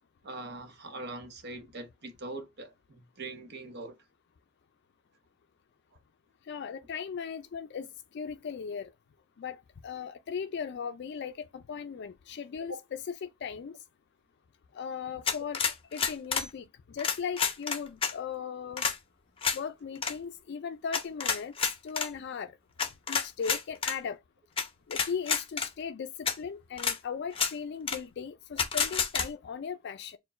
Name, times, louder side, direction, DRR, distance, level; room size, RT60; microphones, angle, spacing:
voice 1, 0.2-4.0 12.6-12.8, right 2 dB, 55° right, 0.8 m, -42 dB
voice 2, 6.5-8.9 9.4-13.7 14.7-15.6 15.9-18.9 19.5-21.5 21.8-22.5 23.1-24.2 24.9-30.2, left 6 dB, 60° left, 0.4 m, -38 dB
sound 1, 15.3-16.5 17.0-18.1 18.8-19.0 19.4-19.6 20.0-20.1 20.9-22.1 22.8-24.0 24.6-24.7 24.9-25.7 26.3-26.4 26.8-27.0 27.3-27.5 27.9-28.0 28.6-29.3, left 6 dB, 30° left, 0.7 m, -29 dB
4.6 x 2.1 x 4.1 m
head